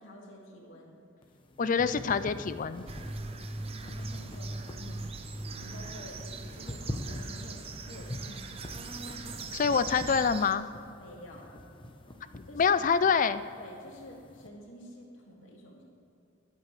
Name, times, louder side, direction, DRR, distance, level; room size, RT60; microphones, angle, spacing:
voice 1, 0.0-1.0 3.6-5.1 5.5-8.5 9.4-9.8 11.0-11.5 12.2-12.9 13.6-15.9, equal, 85° left, -2 dB, 2.4 m, -49 dB
sound 1, 1.2-14.5, left 1 dB, 25° left, 0.8 m, -45 dB
voice 2, 1.6-2.8 9.5-10.7 12.6-13.4, left 6 dB, 40° left, 13 dB, 0.4 m, -26 dB
sound 2, 2.9-10.5, right 3 dB, 30° right, 0.6 m, -40 dB
22.5 x 8.2 x 3.3 m, 2.6 s
head